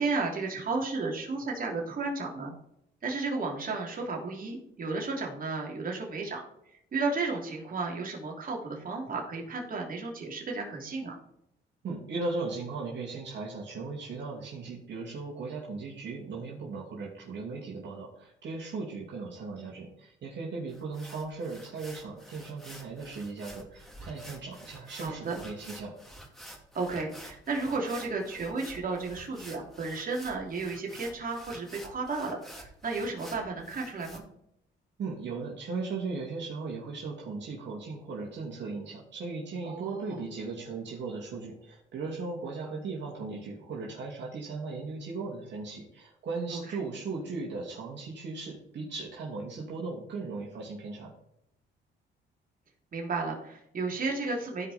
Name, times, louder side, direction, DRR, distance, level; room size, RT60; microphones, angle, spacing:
voice 1, 0.0-2.6 3.0-6.4 6.9-11.2 24.9-25.4 26.7-34.2 39.6-40.2 46.5-46.8 52.9-54.7, right 3 dB, 45° right, 0 dB, 3.3 m, -33 dB
voice 2, 11.8-25.9 35.0-51.1, right 4 dB, 65° right, -4 dB, 2.6 m, -37 dB
sound 1, 20.7-34.2, right 1 dB, ahead, 2.5 m, -49 dB
15.0 x 5.1 x 4.4 m, 0.77 s
cardioid pair, 90°, 20 cm